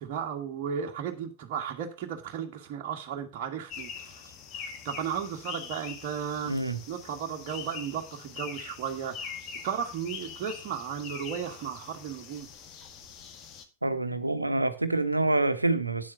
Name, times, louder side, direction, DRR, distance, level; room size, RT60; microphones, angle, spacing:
voice 1, 0.0-4.3 4.5-6.6 6.9-12.5, right 8 dB, 45° right, 1.6 m, -35 dB
sound 1, 3.7-13.7, left 6 dB, 35° left, 1.8 m, -43 dB
voice 2, 6.5-6.8 13.8-16.1, right 2 dB, 85° right, 1.0 m, -27 dB
9.6 x 7.4 x 5.5 m
figure-of-eight pair, 90°, 0 cm